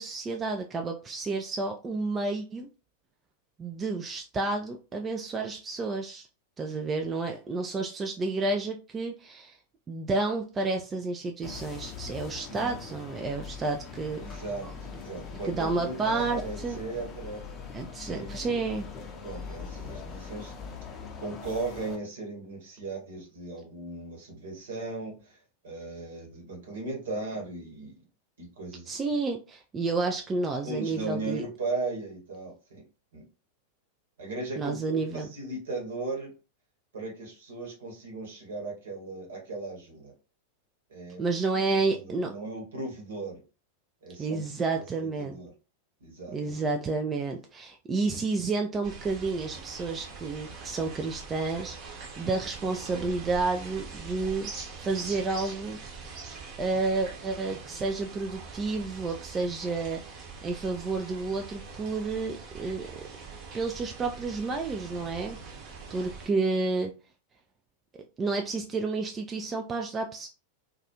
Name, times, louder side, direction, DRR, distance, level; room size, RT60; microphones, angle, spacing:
voice 1, 0.0-2.7 3.6-6.3 6.6-9.6 9.9-14.4 15.4-16.8 17.7-18.8 28.9-31.4 34.6-35.3 41.2-42.3 44.2-45.4 46.3-55.8 56.6-60.0 60.4-63.0 63.5-65.4 65.9-66.9 68.2-70.3, right 3 dB, 20° right, 3 dB, 0.3 m, -30 dB
sound 1, 11.4-22.0, left 5 dB, 25° left, 0.5 m, -42 dB
voice 2, 14.1-17.4 18.1-18.6 19.2-20.5 21.2-25.4 25.6-28.0 28.4-28.9 30.6-32.8 33.1-33.2 34.2-36.3 36.9-40.1 40.9-41.3 41.9-43.4 44.0-44.4 45.0-45.5 46.0-46.5, right 3 dB, 65° right, 0 dB, 1.0 m, -37 dB
sound 2, 48.8-66.3, right 4 dB, 40° right, 0.9 m, -43 dB
2.3 x 2.3 x 2.8 m, 0.33 s
figure-of-eight pair, 90°, 0 cm